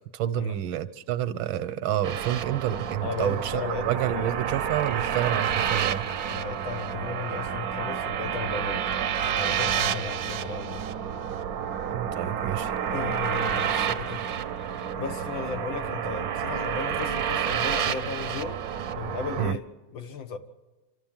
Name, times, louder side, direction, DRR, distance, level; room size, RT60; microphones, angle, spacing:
voice 1, 0.1-6.1 11.9-12.7 19.4-19.6, right 11 dB, 85° right, 1.6 m, -29 dB
sound 1, 2.0-19.5, right 8 dB, 60° right, 1.0 m, -29 dB
voice 2, 3.0-4.3 6.3-8.8 9.4-10.9 12.9-14.2 15.0-18.6 18.9-19.7 19.9-20.4, left 5 dB, 75° left, 1.9 m, -35 dB
27.0 x 13.0 x 7.4 m
omnidirectional pair, 2.2 m